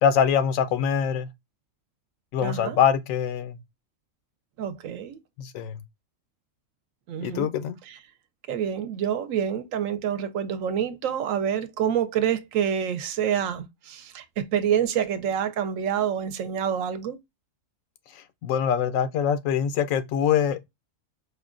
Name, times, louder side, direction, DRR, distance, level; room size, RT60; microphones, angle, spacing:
voice 1, 0.0-1.3 2.3-3.6 5.4-5.8 7.2-7.8 18.4-20.6, left 8 dB, 85° left, 1.0 m, -23 dB
voice 2, 2.4-2.8 4.6-5.2 7.1-7.5 7.9-8.0 8.5-17.2, right 9 dB, 80° right, 1.0 m, -27 dB
4.8 x 2.2 x 2.4 m
omnidirectional pair, 1.4 m